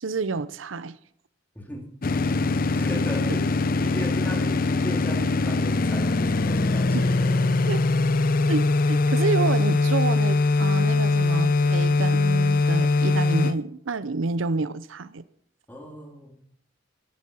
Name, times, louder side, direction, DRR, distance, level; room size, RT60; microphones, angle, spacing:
voice 1, 0.0-1.0 6.9-7.0 7.7-7.8 8.5-15.2, right 4 dB, 90° right, 0.7 m, -28 dB
voice 2, 1.5-1.9 2.7-3.5 3.8-7.6 15.7-16.4, left 1 dB, 10° left, 3.1 m, -37 dB
sound 1, 2.0-13.6, left 3 dB, 45° left, 0.6 m, -22 dB
14.0 x 13.0 x 5.6 m
head